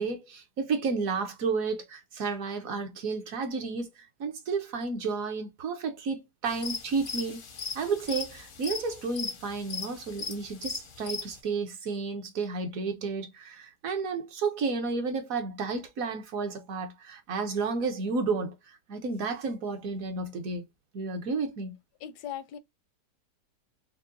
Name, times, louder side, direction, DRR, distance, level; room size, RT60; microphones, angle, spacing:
voice 1, 0.0-7.4 7.7-20.6 20.9-21.7, right 4 dB, 65° right, 1.1 m, -32 dB
sound 1, 6.5-11.4, left 5 dB, 60° left, 0.5 m, -38 dB
voice 2, 22.0-22.6, left 10 dB, 80° left, 1.2 m, -38 dB
5.4 x 2.2 x 2.6 m
omnidirectional pair, 1.7 m